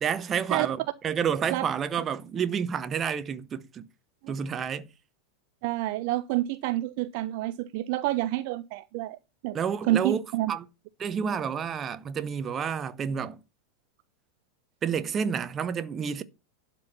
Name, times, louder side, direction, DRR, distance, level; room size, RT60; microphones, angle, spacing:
voice 1, 0.0-3.9 4.3-4.9 9.5-10.2 10.5-10.7 11.0-13.4 14.8-16.2, right 7 dB, 25° right, 0.8 m, -29 dB
voice 2, 5.6-9.2 9.4-9.6 9.9-10.5, right 15 dB, 45° right, 0.5 m, -28 dB
11.5 x 4.6 x 5.5 m
figure-of-eight pair, 90°, 0 cm